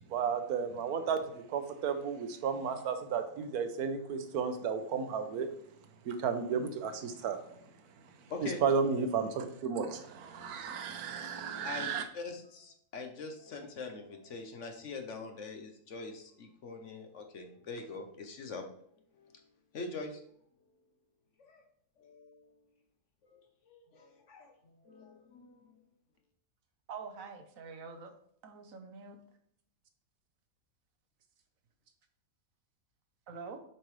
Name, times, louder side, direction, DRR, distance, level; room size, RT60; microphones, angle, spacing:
voice 1, 0.1-5.5 6.1-7.4 8.6-12.0, right 6 dB, 90° right, 8 dB, 1.3 m, -33 dB
voice 2, 12.1-18.8 19.1-19.4 19.7-20.2 20.6-20.7 21.4-21.6 22.0-22.6 23.2-25.8, left 3 dB, 60° left, 5 dB, 1.1 m, -44 dB
voice 3, 26.9-28.1 28.4-29.2 33.3-33.6, right 5 dB, 65° right, 6 dB, 1.2 m, -45 dB
7.4 x 5.2 x 3.1 m, 0.67 s
omnidirectional pair, 1.6 m